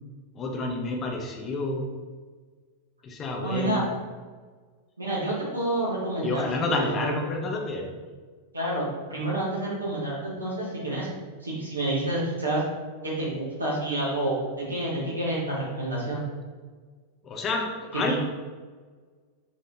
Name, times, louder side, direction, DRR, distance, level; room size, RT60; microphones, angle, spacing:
voice 1, 0.3-1.9 3.0-3.9 6.2-7.8 17.2-18.1, left 3 dB, 25° left, 1 dB, 0.7 m, -29 dB
voice 2, 3.4-3.8 5.0-7.1 8.5-11.1 11.4-12.6 13.0-16.2 18.1-18.2, right 1 dB, 75° right, -5 dB, 1.1 m, -29 dB
5.8 x 3.0 x 2.7 m, 1.5 s
figure-of-eight pair, 90°, 0 cm